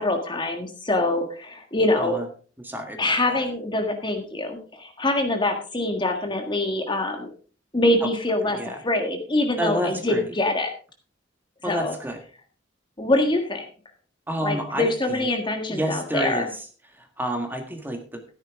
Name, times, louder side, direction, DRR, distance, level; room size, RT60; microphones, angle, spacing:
voice 1, 0.0-2.2 3.0-7.3 7.7-8.6 8.8-10.7 11.7-11.9 13.0-13.7 14.4-16.5, left 2 dB, 25° left, 5 dB, 1.6 m, -24 dB
voice 2, 1.9-2.2 2.6-3.5 8.0-8.1 8.5-8.8 9.6-10.3 11.6-12.2 14.3-15.3 15.7-16.6 16.9-18.3, equal, 10° right, 4 dB, 1.6 m, -30 dB
13.0 x 10.5 x 3.6 m, 0.39 s
head